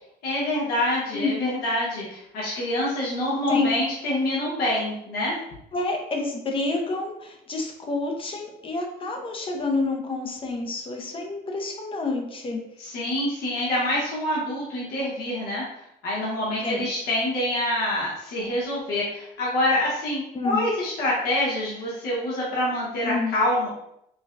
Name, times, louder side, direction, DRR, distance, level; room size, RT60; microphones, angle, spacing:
voice 1, 0.2-5.4 12.8-15.6 16.0-23.7, left 1 dB, 70° left, -6 dB, 1.1 m, -26 dB
voice 2, 1.1-1.6 3.5-3.7 5.7-12.6 16.6-16.9 20.3-20.7 23.0-23.3, left 3 dB, 30° left, 2 dB, 0.7 m, -28 dB
5.1 x 2.2 x 2.5 m, 0.77 s
cardioid pair, 110°, 17 cm